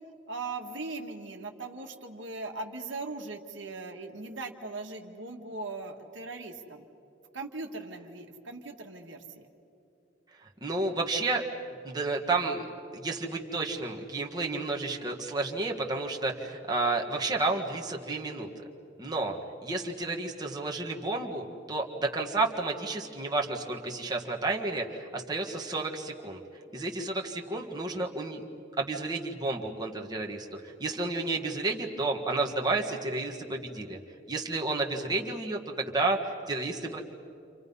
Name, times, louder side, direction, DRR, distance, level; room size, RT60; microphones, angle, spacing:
voice 1, 0.3-6.8 7.3-9.2 19.7-19.9, right 3 dB, 80° right, 3 dB, 1.8 m, -39 dB
voice 2, 10.6-11.4 11.8-12.6 12.9-18.5 19.0-26.4 26.7-28.4 28.8-34.0 34.3-37.0, right 3 dB, 20° right, -1 dB, 1.7 m, -31 dB
29.5 x 27.0 x 5.5 m, 2.8 s
head